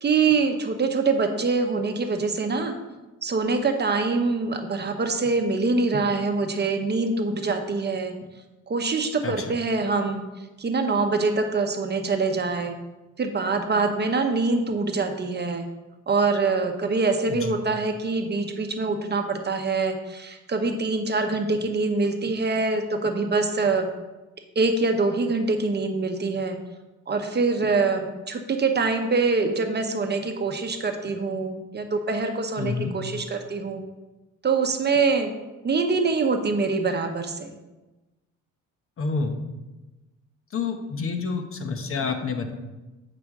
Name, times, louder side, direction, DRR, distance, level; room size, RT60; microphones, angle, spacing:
voice 1, 0.0-2.7 3.2-8.1 8.7-10.2 10.6-12.7 13.2-15.7 16.1-23.9 24.6-26.6 27.1-33.8 34.4-35.3 35.6-37.5, right 4 dB, 35° right, 5 dB, 0.8 m, -24 dB
voice 2, 32.6-32.9 39.0-39.4 40.5-42.5, left 4 dB, 45° left, 6 dB, 0.9 m, -28 dB
8.6 x 5.0 x 3.6 m, 1.1 s
cardioid pair, 90°, 30 cm